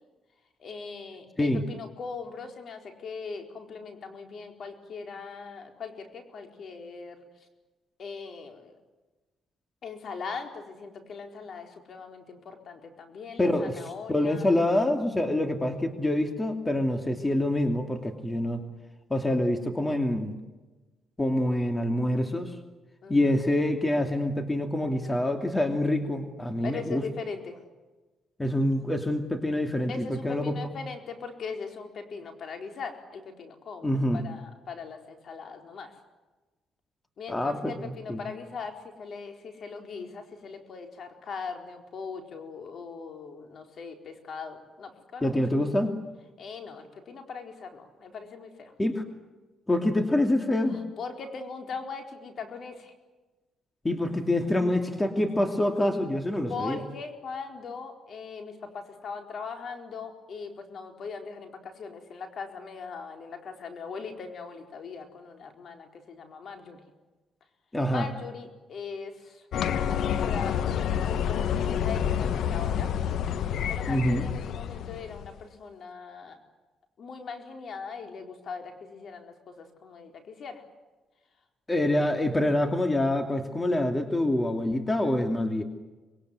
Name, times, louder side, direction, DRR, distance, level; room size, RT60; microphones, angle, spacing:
voice 1, 0.6-7.2 8.0-8.7 9.8-14.6 23.0-23.4 26.6-27.6 29.9-35.9 37.2-45.4 46.4-48.7 50.7-52.9 56.5-66.9 67.9-72.9 73.4-76.4 77.0-80.6, left 5 dB, 55° left, 4 dB, 4.4 m, -40 dB
voice 2, 13.4-13.8 14.1-18.6 19.1-20.4 21.2-22.6 23.1-27.0 28.4-30.8 33.8-34.2 37.3-38.2 45.2-45.9 48.8-49.0 49.7-50.8 53.8-56.8 67.7-68.1 73.9-74.3 81.7-85.6, left 1 dB, 15° left, 5 dB, 2.7 m, -26 dB
sound 1, 69.5-75.4, left 8 dB, 70° left, 1.1 m, -28 dB
25.5 x 22.0 x 9.6 m, 1.2 s
cardioid pair, 90°, 0 cm